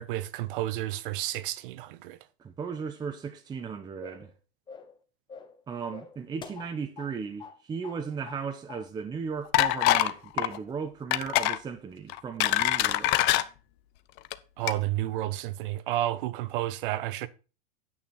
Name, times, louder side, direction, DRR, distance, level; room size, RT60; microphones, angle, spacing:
voice 1, 0.0-2.2 14.6-17.3, right 14 dB, 60° right, 1.2 m, -31 dB
voice 2, 2.4-4.3 5.7-13.3, right 6 dB, 15° right, 0.9 m, -36 dB
sound 1, 4.0-4.3 4.7-5.0 5.3-5.6 5.9-7.1 7.4-7.6 7.8-8.4 8.7-8.9, left 6 dB, 15° left, 1.3 m, -45 dB
sound 2, 9.5-10.1 10.4-10.6 11.1-11.6 12.1-13.4 14.2-14.3 14.7-14.8, left 15 dB, 35° left, 0.8 m, -24 dB
9.7 x 8.4 x 4.3 m
supercardioid pair, 150°, 30 cm